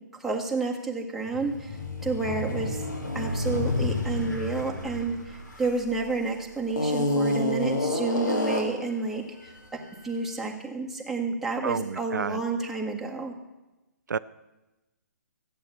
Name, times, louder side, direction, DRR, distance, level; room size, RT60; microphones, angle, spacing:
voice 1, 0.2-2.8 3.1-13.3, right 3 dB, ahead, -2 dB, 1.7 m, -30 dB
sound 1, 1.3-6.1 6.7-8.9, left 2 dB, 85° left, 3.1 m, -29 dB
voice 2, 11.6-12.4 14.1-14.2, right 6 dB, 75° right, 14 dB, 0.4 m, -30 dB
13.5 x 8.8 x 8.3 m, 1.0 s
hypercardioid pair, 140°, 10 cm